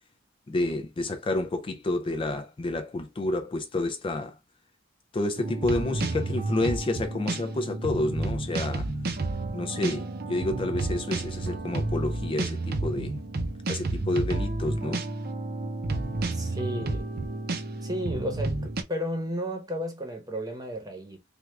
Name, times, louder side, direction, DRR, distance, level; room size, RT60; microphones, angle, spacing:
voice 1, 0.5-4.4 5.1-8.9 9.5-13.1 13.7-15.0, left 2 dB, 25° left, 0.3 m, -29 dB
sound 1, 5.4-18.8, right 2 dB, 55° right, 0.6 m, -31 dB
voice 2, 16.3-17.1 17.8-21.2, equal, 20° right, 0.9 m, -33 dB
3.4 x 2.3 x 3.2 m
head